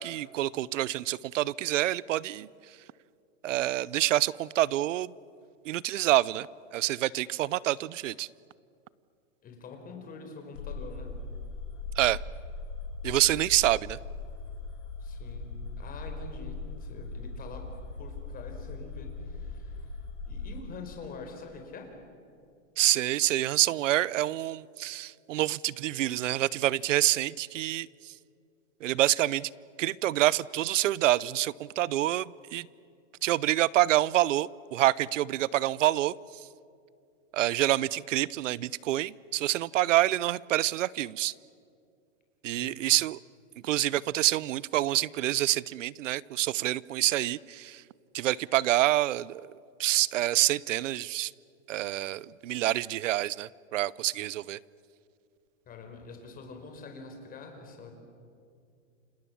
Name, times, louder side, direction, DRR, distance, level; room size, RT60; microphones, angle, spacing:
voice 1, 0.0-2.5 3.4-5.1 5.6-8.3 12.0-12.2 13.0-14.0 22.8-28.1 28.8-29.5 29.8-32.7 33.2-36.1 37.3-41.3 42.4-43.2 43.6-47.8 48.1-49.5 49.8-51.3 51.7-54.6, right 14 dB, 80° right, 22 dB, 0.8 m, -27 dB
voice 2, 9.4-11.1 15.0-17.7 18.0-19.9 20.3-22.0 42.5-42.8 55.7-57.9, left 4 dB, 25° left, 4 dB, 4.8 m, -45 dB
sound 1, 10.5-20.6, left 3 dB, 85° left, 5.1 m, -39 dB
29.5 x 27.0 x 7.2 m, 2.4 s
supercardioid pair, 145°, 38 cm